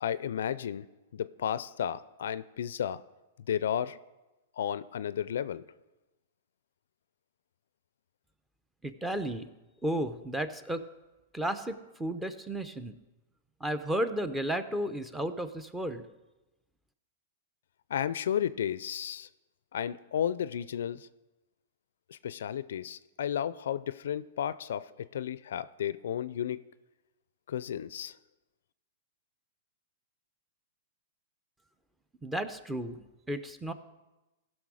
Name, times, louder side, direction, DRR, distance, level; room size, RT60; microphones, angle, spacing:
voice 1, 0.0-0.8 1.1-3.0 3.5-4.0 4.6-5.6 17.9-19.3 19.7-21.1 22.1-26.6 27.5-28.1, left 9 dB, 75° left, 16 dB, 0.4 m, -33 dB
voice 2, 8.8-9.5 9.8-10.9 11.3-12.9 13.6-16.1 32.2-33.7, right 1 dB, 10° right, 11 dB, 0.6 m, -33 dB
15.5 x 6.1 x 4.9 m, 1.0 s
hypercardioid pair, 130°, 0 cm